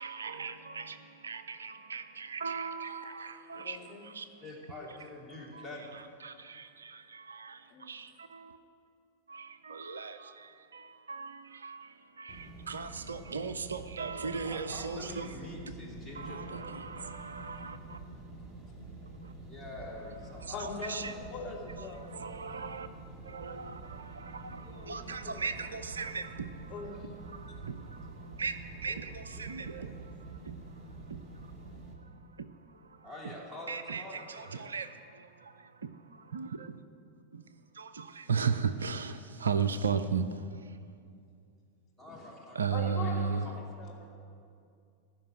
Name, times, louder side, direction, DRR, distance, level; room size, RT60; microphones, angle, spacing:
voice 1, 0.0-4.3 5.5-5.6 6.2-8.6 9.3-15.3 16.2-18.0 19.2-19.3 20.4-21.1 22.0-22.9 23.2-26.9 27.3-28.5 28.8-30.6 31.1-31.5 32.0-32.1 32.4-32.5 32.8-33.0 33.7-36.8 37.3-37.5 37.7-40.4 42.6-43.5, right 5 dB, 70° right, 12 dB, 0.5 m, -37 dB
voice 2, 3.5-4.1 7.7-7.9 20.5-22.1 24.6-25.5 26.7-27.1 42.7-43.4 43.7-44.1, left 4 dB, 30° left, -2 dB, 2.5 m, -41 dB
voice 3, 4.4-5.9 14.4-16.7 19.4-20.6 28.9-29.0 29.3-30.0 33.0-34.7 42.0-43.5, left 2 dB, ahead, -5 dB, 3.4 m, -46 dB
sound 1, 12.3-31.9, right 2 dB, 15° right, 2.2 m, -47 dB
15.0 x 5.9 x 9.2 m, 2.4 s
figure-of-eight pair, 90°, 0 cm